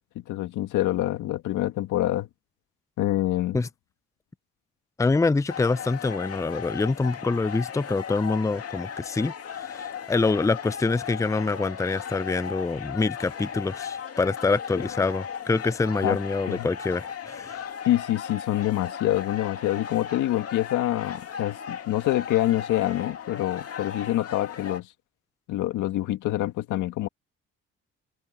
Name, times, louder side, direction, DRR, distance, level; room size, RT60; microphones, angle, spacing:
voice 1, 0.3-2.3 3.0-3.6 14.7-14.8 16.0-16.2 16.5-16.7 17.8-24.9 25.5-27.1, left 14 dB, 90° left, 1.9 m, -26 dB
voice 2, 5.0-17.6, left 3 dB, 10° left, 0.5 m, -26 dB
sound 1, 5.5-24.8, left 8 dB, 50° left, 2.4 m, -37 dB
cardioid pair, 90°, 30 cm